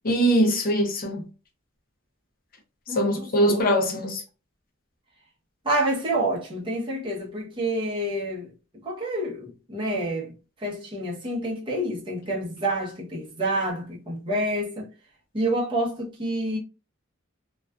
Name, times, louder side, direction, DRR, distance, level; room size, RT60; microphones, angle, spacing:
voice 1, 0.0-1.2 2.9-4.2, equal, 45° left, 0.6 m, -22 dB
voice 2, 2.9-4.0 5.6-8.5 8.8-10.3 10.6-14.9 15.3-16.6, right 1 dB, 25° right, 0.8 m, -28 dB
2.3 x 2.3 x 2.3 m
head